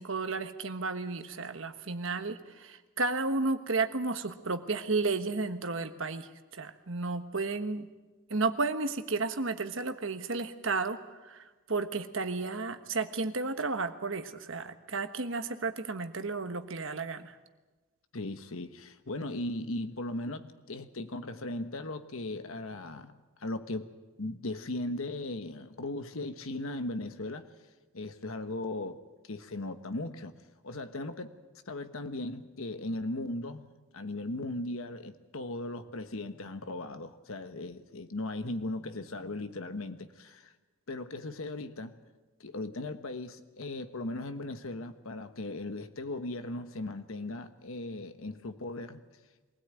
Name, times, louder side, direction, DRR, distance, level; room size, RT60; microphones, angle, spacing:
voice 1, 0.0-7.9 8.3-11.0 11.2-17.4, right 3 dB, 65° right, 9 dB, 1.3 m, -33 dB
voice 2, 18.1-23.1 23.4-23.9 24.2-27.5 27.9-30.3 30.6-31.3 31.7-33.7 33.9-40.5 40.9-42.0 42.4-49.0, left 2 dB, 70° left, 9 dB, 1.2 m, -37 dB
23.0 x 16.5 x 9.1 m, 1.2 s
head